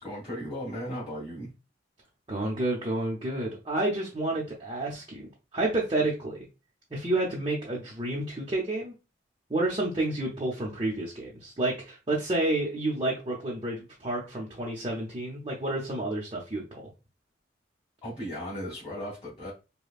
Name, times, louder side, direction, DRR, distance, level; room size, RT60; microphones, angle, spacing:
voice 1, 0.0-1.5 18.0-19.5, equal, 30° left, -10 dB, 2.1 m, -36 dB
voice 2, 2.3-6.5 6.9-8.9 9.5-16.8, right 2 dB, 30° right, -4 dB, 0.8 m, -30 dB
5.2 x 2.2 x 2.4 m, 0.29 s
head